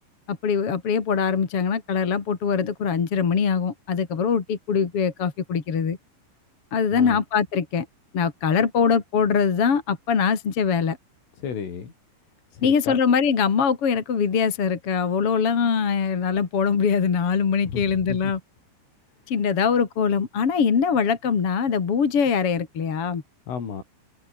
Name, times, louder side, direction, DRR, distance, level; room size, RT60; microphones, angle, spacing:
voice 1, 0.3-6.0 6.7-7.9 8.1-11.0 12.6-18.4 19.3-23.2, left 6 dB, 40° left, 2.6 m, -22 dB
voice 2, 11.4-11.9 12.5-13.0 17.6-18.3 23.5-23.8, left 6 dB, 85° left, 7.7 m, -33 dB
omnidirectional pair, 5.5 m